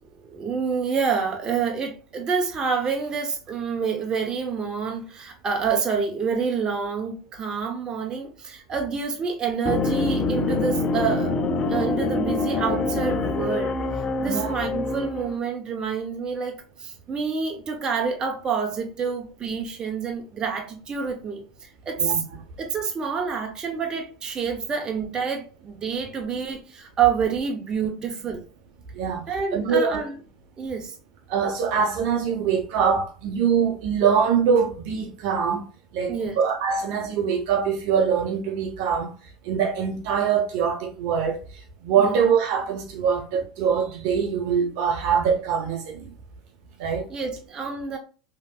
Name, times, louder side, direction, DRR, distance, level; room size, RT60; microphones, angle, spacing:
voice 1, 0.2-11.4 11.7-13.8 14.2-22.2 22.6-28.5 29.3-30.2 30.6-30.9 36.1-36.4 42.0-42.2 47.1-48.0, right 6 dB, 30° right, 0.9 m, -27 dB
sound 1, 9.6-15.4, left 3 dB, 30° left, 0.5 m, -25 dB
voice 2, 28.9-29.3 29.5-30.0 31.3-35.7 35.9-39.1 39.4-41.4 41.8-46.1 46.8-47.1, right 7 dB, 60° right, 0.8 m, -23 dB
3.4 x 2.8 x 2.3 m
hypercardioid pair, 95°, 3 cm